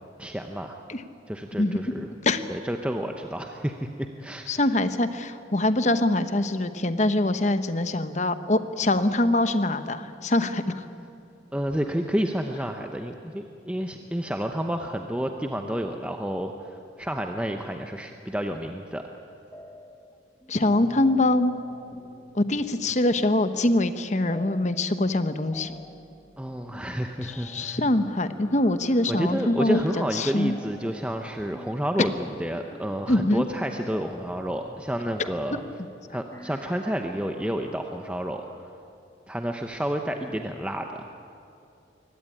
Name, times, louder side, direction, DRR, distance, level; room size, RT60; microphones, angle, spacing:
voice 1, 0.2-0.8 1.3-2.1 2.5-4.6 11.5-19.0 26.4-27.8 29.1-35.6 36.1-38.4 39.3-41.1, equal, 5° right, 4 dB, 0.8 m, -30 dB
voice 2, 1.6-2.0 2.2-2.4 4.5-10.9 20.5-21.5 22.3-25.7 27.2-29.8 30.1-30.5 33.1-33.4, left 1 dB, 40° left, 10 dB, 1.0 m, -24 dB
sound 1, 19.5-20.1 20.4-38.7, left 1 dB, 15° left, 1.1 m, -48 dB
23.5 x 17.5 x 9.9 m, 2.6 s
head